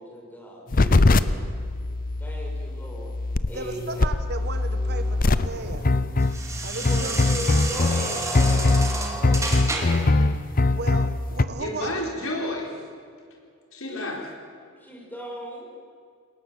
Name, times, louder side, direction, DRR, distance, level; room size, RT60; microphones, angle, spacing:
voice 1, 0.0-1.4 2.2-3.1 3.5-4.1 6.8-10.1 13.9-14.2 14.8-15.7, equal, 10° left, -2 dB, 5.3 m, -37 dB
sound 1, 0.7-11.4, left 2 dB, 40° left, 0.7 m, -22 dB
voice 2, 3.5-5.9 6.6-7.1 10.8-12.0, right 3 dB, 50° right, 8 dB, 1.7 m, -35 dB
sound 2, 4.3-10.2, right 2 dB, 15° right, 2.5 m, -32 dB
voice 3, 11.6-12.7 13.7-14.2, left 1 dB, 70° left, 0 dB, 4.4 m, -30 dB
22.0 x 19.0 x 7.6 m, 2.2 s
head